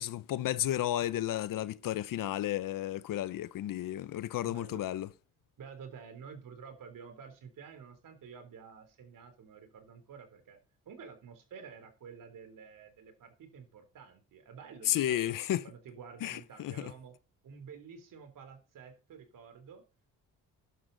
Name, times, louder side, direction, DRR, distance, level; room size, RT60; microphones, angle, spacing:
voice 1, 0.0-5.1 14.8-15.6 16.2-16.9, left 13 dB, 75° left, 0.9 m, -32 dB
voice 2, 4.4-5.0 5.6-10.6 10.9-15.4 15.6-17.2 17.4-19.8, right 6 dB, 70° right, 3.6 m, -50 dB
12.5 x 10.5 x 4.1 m
cardioid pair, 80°, 33 cm